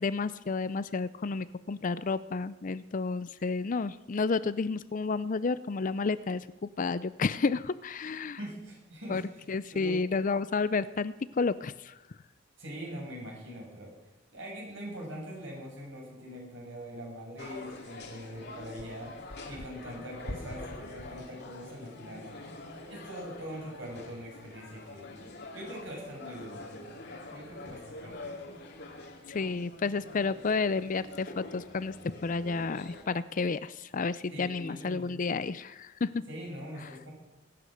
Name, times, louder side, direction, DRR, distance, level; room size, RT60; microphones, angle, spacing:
voice 1, 0.0-8.4 9.1-9.2 9.5-11.9 29.3-36.2, left 4 dB, 40° left, 16 dB, 0.5 m, -31 dB
voice 2, 8.4-9.4 9.7-10.0 12.6-13.9 14.3-19.1 19.4-22.4 22.8-25.1 25.5-28.1 34.3-35.2 36.3-37.1, equal, 70° right, -2 dB, 6.6 m, -43 dB
sound 1, 17.4-33.0, left 2 dB, 60° left, 2.4 m, -45 dB
21.0 x 9.7 x 6.4 m, 1.1 s
head